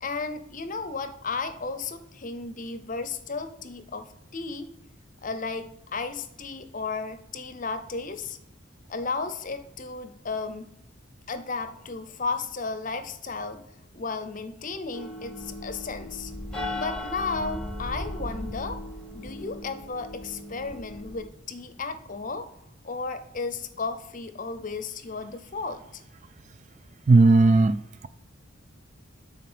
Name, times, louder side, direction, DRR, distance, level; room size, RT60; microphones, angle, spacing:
voice 1, 0.0-4.7 5.2-8.4 8.9-10.7 11.3-13.6 13.9-16.3 16.7-18.8 19.1-22.5 22.8-26.0, left 4 dB, 40° left, 9 dB, 0.7 m, -34 dB
sound 1, 14.9-21.2, left 1 dB, 5° left, 1.1 m, -37 dB
voice 2, 27.1-28.1, right 3 dB, 35° right, 13 dB, 0.3 m, -17 dB
9.5 x 4.1 x 4.3 m, 0.81 s
head